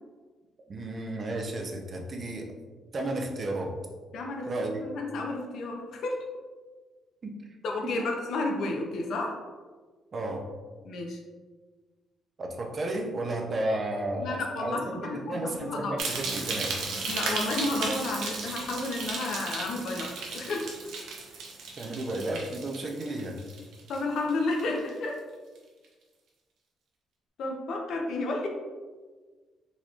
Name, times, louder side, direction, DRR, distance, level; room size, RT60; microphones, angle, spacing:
voice 1, 0.7-2.5 2.9-3.7 4.5-4.9 7.2-7.4 7.8-8.0 10.1-10.5 12.4-16.7 21.8-23.4, right 1 dB, 40° right, 2 dB, 0.6 m, -33 dB
voice 2, 4.1-4.5 4.8-6.3 7.6-9.4 10.8-11.2 14.2-16.0 17.1-20.7 23.9-25.2 27.4-28.5, left 2 dB, 70° left, 1 dB, 0.6 m, -31 dB
sound 1, 16.0-24.3 24.6-25.0 25.6-25.7, right 4 dB, 80° right, 0.7 m, -35 dB
4.1 x 3.0 x 2.4 m, 1.4 s
cardioid pair, 90°, 0 cm